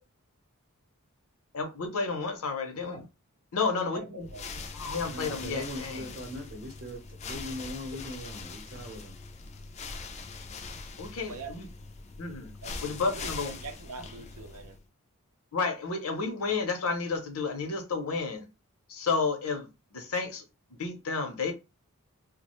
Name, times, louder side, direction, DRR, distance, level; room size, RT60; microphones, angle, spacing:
voice 1, 1.5-3.0 3.5-4.3 4.7-6.1 11.0-11.7 12.2-12.5 12.8-13.6 15.5-18.5 18.9-20.4 20.7-21.5, left 4 dB, 70° left, 0.6 m, -31 dB
voice 2, 3.5-4.5 11.2-11.5 12.6-14.8, right 3 dB, 75° right, 0.5 m, -44 dB
sound 1, 4.2-14.8, left 4 dB, 30° left, 0.3 m, -42 dB
voice 3, 5.1-9.2, equal, 45° right, 0.8 m, -40 dB
2.3 x 2.1 x 2.9 m
head